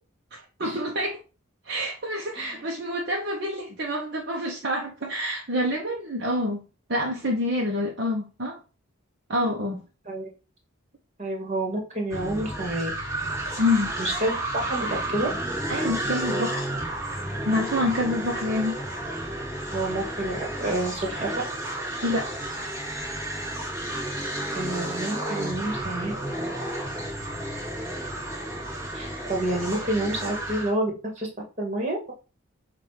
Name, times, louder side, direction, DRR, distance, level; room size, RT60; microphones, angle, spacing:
voice 1, 0.3-1.2 1.6-6.6 6.9-8.6 9.3-9.8 13.6-13.9 15.7-16.7 17.4-18.8 22.0-22.4, left 1 dB, 50° right, -1 dB, 1.0 m, -27 dB
voice 2, 11.2-12.9 14.0-15.3 19.7-21.3 24.5-26.1 28.9-31.3 31.6-32.1, right 1 dB, 35° right, 1 dB, 2.0 m, -29 dB
sound 1, 12.1-30.7, right 1 dB, 10° right, 2.9 m, -32 dB
7.4 x 2.6 x 5.0 m, 0.33 s
head